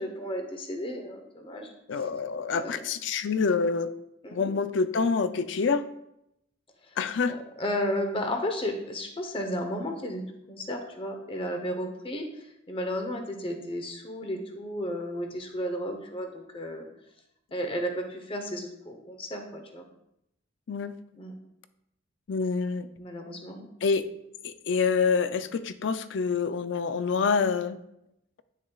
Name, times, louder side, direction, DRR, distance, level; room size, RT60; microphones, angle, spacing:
voice 1, 0.0-1.7 2.5-2.8 4.2-4.5 7.6-10.2 10.5-12.2 12.7-16.9 17.5-19.9 21.2-21.3 23.0-23.6, equal, 25° left, 4 dB, 0.9 m, -33 dB
voice 2, 1.9-3.9 4.3-5.8 7.0-7.4 20.7-20.9 22.3-22.9 23.8-24.0 24.4-27.8, left 5 dB, 65° left, 12 dB, 0.4 m, -26 dB
9.8 x 6.5 x 2.3 m, 0.82 s
head